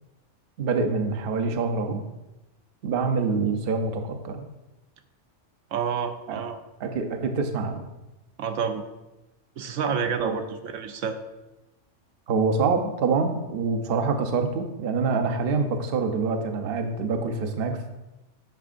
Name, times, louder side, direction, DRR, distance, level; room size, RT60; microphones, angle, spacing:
voice 1, 0.6-2.0 2.8-4.5 6.3-6.4 6.8-7.8 10.2-10.4 12.3-17.8, right 4 dB, 55° right, 5 dB, 0.8 m, -26 dB
voice 2, 5.7-6.6 8.4-8.8 9.6-11.2, right 6 dB, 80° right, 7 dB, 1.0 m, -29 dB
9.1 x 6.0 x 2.5 m, 1.0 s
omnidirectional pair, 1.3 m